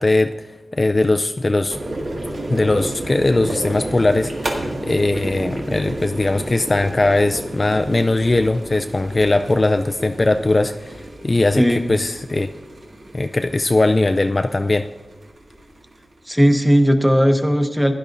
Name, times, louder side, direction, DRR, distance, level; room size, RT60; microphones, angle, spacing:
voice 1, 0.0-1.8 2.5-12.5 13.1-14.9, left 2 dB, 35° left, 7 dB, 0.3 m, -19 dB
sound 1, 1.7-16.2, right 1 dB, 75° right, 1.9 m, -31 dB
voice 2, 11.6-11.9 16.3-17.9, equal, 5° right, 6 dB, 0.9 m, -16 dB
15.5 x 11.0 x 2.6 m, 1.2 s
wide cardioid pair, 95°, 0 cm